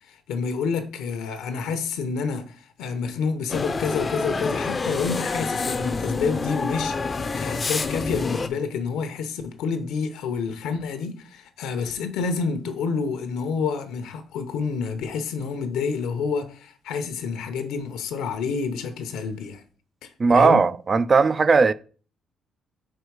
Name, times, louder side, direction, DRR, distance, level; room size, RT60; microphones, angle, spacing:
voice 1, 0.1-19.6 20.0-20.6, left 5 dB, 90° left, 0.8 m, -28 dB
sound 1, 3.5-8.5, left 4 dB, 35° left, 0.5 m, -27 dB
voice 2, 20.2-21.7, right 4 dB, 40° right, 0.4 m, -17 dB
4.7 x 4.5 x 4.7 m
cardioid pair, 90°, 0 cm